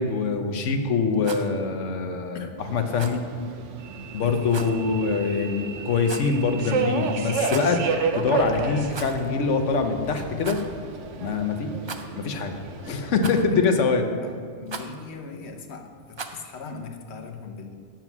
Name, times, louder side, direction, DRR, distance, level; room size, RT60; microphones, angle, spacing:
voice 1, 0.0-3.2 4.1-7.8 8.1-10.6 11.2-11.7 12.1-12.5 12.8-14.1, left 4 dB, 90° left, 6 dB, 1.2 m, -24 dB
Rattle, 1.1-1.5 2.9-3.2 4.5-4.8 6.0-6.4 7.4-7.8 8.9-9.3 9.6-9.7 10.4-10.7 11.8-12.3 13.2-13.6 14.7-15.0 16.1-16.5, right 4 dB, 50° right, 0.3 m, -37 dB
Subway metro underground, 2.6-13.1, right 5 dB, 85° right, 1.1 m, -32 dB
voice 2, 14.2-17.8, left 4 dB, 70° left, 4 dB, 1.1 m, -39 dB
9.1 x 7.5 x 6.0 m, 2.1 s
omnidirectional pair, 1.2 m